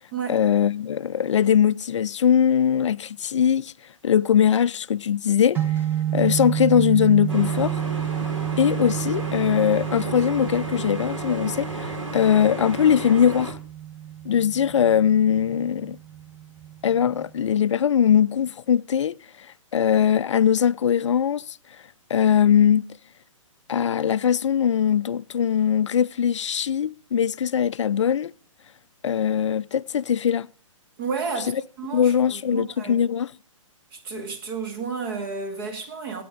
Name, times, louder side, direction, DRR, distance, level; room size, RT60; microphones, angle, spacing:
voice 1, 0.3-3.7 4.0-5.8 6.1-7.8 8.6-13.6 14.3-16.0 16.8-21.8 22.1-23.0 23.7-28.3 29.0-30.5 31.5-31.6 31.9-33.3, left 8 dB, 65° left, 0.4 m, -21 dB
sound 1, 5.5-17.6, right 11 dB, 10° right, 1.0 m, -30 dB
sound 2, 7.3-13.5, right 2 dB, 65° right, 3.3 m, -33 dB
voice 2, 31.0-31.5 31.8-33.0 33.9-36.2, right 5 dB, 45° right, 2.2 m, -31 dB
12.0 x 8.8 x 3.7 m
figure-of-eight pair, 125°, 17 cm